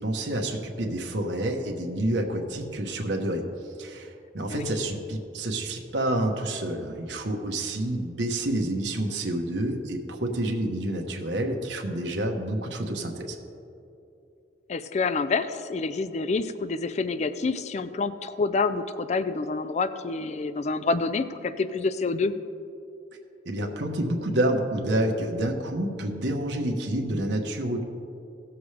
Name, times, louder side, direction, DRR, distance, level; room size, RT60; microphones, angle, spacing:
voice 1, 0.0-3.5 3.8-13.4 23.4-27.8, right 1 dB, 80° right, 2 dB, 1.1 m, -28 dB
voice 2, 14.7-22.3, left 4 dB, 40° left, 12 dB, 0.4 m, -27 dB
17.0 x 7.0 x 3.3 m, 2.7 s
head